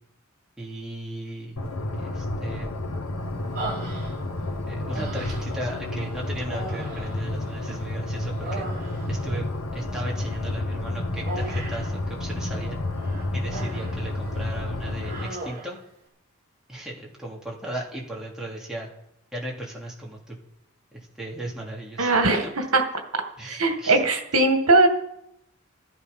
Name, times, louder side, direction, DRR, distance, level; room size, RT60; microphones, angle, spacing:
voice 1, 0.6-1.6 1.9-2.7 4.7-8.7 9.1-12.8 13.3-15.8 16.7-18.9 19.3-20.4 20.9-22.1 22.4-22.5 23.4-24.1, right 1 dB, 5° right, -4 dB, 3.0 m, -36 dB
sound 1, 1.6-15.3, left 1 dB, 85° left, 1.7 m, -30 dB
Human voice, 3.6-4.5 4.9-5.7 6.4-7.9 8.2-9.3 11.3-12.0 13.0-14.0 14.3-14.6 15.0-15.8, right 2 dB, 45° right, 4.0 m, -37 dB
voice 2, 22.0-22.8 23.5-24.9, right 2 dB, 80° right, 5 dB, 2.0 m, -20 dB
14.5 x 13.0 x 5.5 m, 0.80 s
head